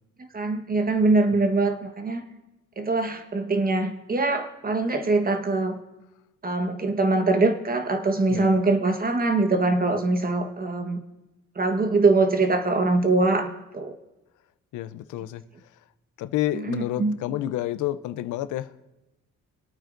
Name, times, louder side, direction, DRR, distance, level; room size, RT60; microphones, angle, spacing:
voice 1, 0.3-2.2 2.8-5.8 6.4-11.0 11.6-13.9 16.5-17.2, right 3 dB, 30° right, 7 dB, 1.2 m, -23 dB
voice 2, 14.7-15.4 16.2-18.7, left 13 dB, 80° left, 14 dB, 0.6 m, -29 dB
25.0 x 9.0 x 2.6 m, 0.99 s
cardioid pair, 90°, 30 cm